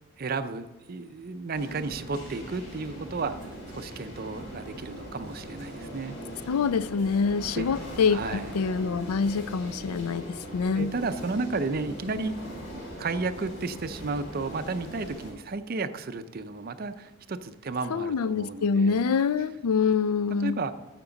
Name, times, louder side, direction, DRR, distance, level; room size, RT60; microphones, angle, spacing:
voice 1, 0.2-6.2 7.5-7.7 8.1-8.5 10.7-12.3 13.0-19.0 20.4-20.7, right 3 dB, 45° right, 0.5 m, -33 dB
sound 1, 1.5-15.3, equal, 50° left, 2.9 m, -40 dB
voice 2, 6.5-10.9 17.9-20.6, left 5 dB, 85° left, 0.4 m, -26 dB
14.0 x 6.0 x 3.8 m
head